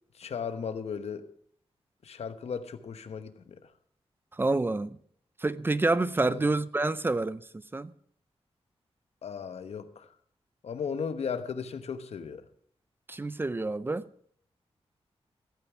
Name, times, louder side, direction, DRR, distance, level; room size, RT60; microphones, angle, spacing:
voice 1, 0.2-1.3 2.0-3.6 6.2-6.4 9.2-10.1 10.6-12.4, left 6 dB, 80° left, 1.0 m, -36 dB
voice 2, 4.4-5.0 5.4-7.4 7.7-7.9 13.1-14.1, right 2 dB, 20° right, 0.4 m, -27 dB
15.0 x 9.0 x 5.9 m
wide cardioid pair, 145°, 11 cm